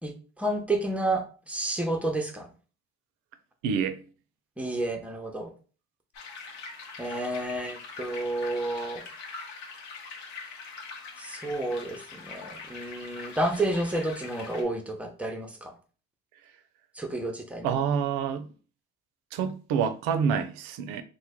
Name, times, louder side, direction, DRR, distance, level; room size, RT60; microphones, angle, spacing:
voice 1, 0.0-2.5 4.6-5.5 7.0-9.0 11.2-15.7 16.9-17.7, right 1 dB, 5° right, 0.6 m, -30 dB
voice 2, 3.6-4.0 17.6-18.5 19.3-21.0, right 7 dB, 85° right, 0.5 m, -27 dB
sound 1, 6.1-14.6, left 4 dB, 65° left, 0.8 m, -43 dB
3.0 x 2.1 x 3.5 m
cardioid pair, 100°, 31 cm